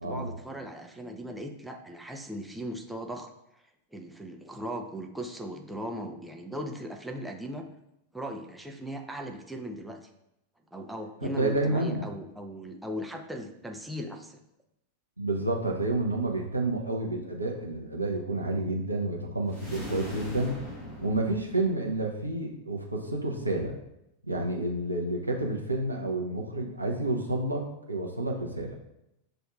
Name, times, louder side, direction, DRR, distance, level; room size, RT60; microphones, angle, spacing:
voice 1, 0.0-3.3 3.9-7.7 8.1-10.0 10.7-14.4 24.6-24.7, equal, 5° right, 3 dB, 0.5 m, -38 dB
voice 2, 11.2-12.1 15.2-20.6 21.0-23.7 24.2-28.7, right 2 dB, 85° right, 0 dB, 0.6 m, -30 dB
sound 1, 19.5-22.1, left 2 dB, 30° left, 1.4 m, -40 dB
7.6 x 2.6 x 2.4 m, 0.84 s
figure-of-eight pair, 90°, 0 cm